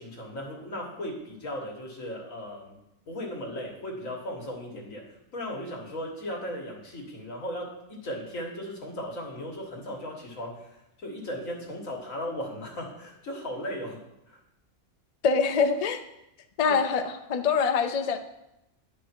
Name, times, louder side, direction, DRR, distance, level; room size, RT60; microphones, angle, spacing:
voice 1, 0.0-2.8 3.1-14.4 16.6-16.8, equal, 85° left, 0 dB, 1.9 m, -37 dB
voice 2, 15.2-16.0 16.6-17.0 17.3-18.2, left 5 dB, 45° left, 6 dB, 0.5 m, -24 dB
10.5 x 4.9 x 4.4 m, 0.87 s
omnidirectional pair, 1.4 m